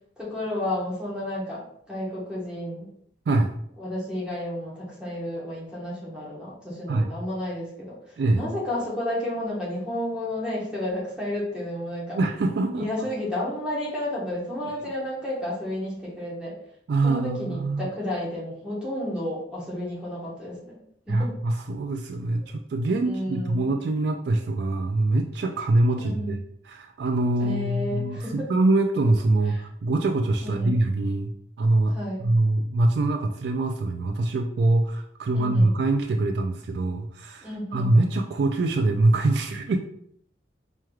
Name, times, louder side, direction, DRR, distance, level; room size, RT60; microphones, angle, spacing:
voice 1, 0.2-2.9 3.8-12.2 12.8-16.6 17.0-20.8 21.1-21.3 22.4-22.5 23.0-23.7 26.0-26.3 27.4-28.5 29.5-29.7 30.4-30.7 31.9-32.2 35.3-35.7 37.4-38.0, left 1 dB, 5° right, -6 dB, 1.2 m, -31 dB
voice 2, 12.1-12.8 16.9-17.9 21.1-26.4 26.6-31.3 31.6-31.9 32.2-39.8, right 2 dB, 60° right, 4 dB, 0.3 m, -24 dB
4.5 x 3.1 x 2.3 m, 0.69 s
head